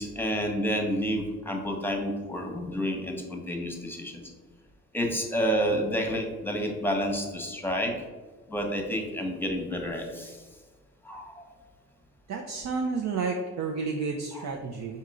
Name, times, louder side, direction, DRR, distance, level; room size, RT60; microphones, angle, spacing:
voice 1, 0.0-4.2 4.9-7.9 8.5-10.4 11.0-11.3, equal, 5° left, 2 dB, 1.0 m, -29 dB
voice 2, 12.3-15.0, right 4 dB, 60° right, 2 dB, 0.5 m, -31 dB
3.6 x 2.8 x 4.7 m, 1.3 s
cardioid pair, 65°, 30 cm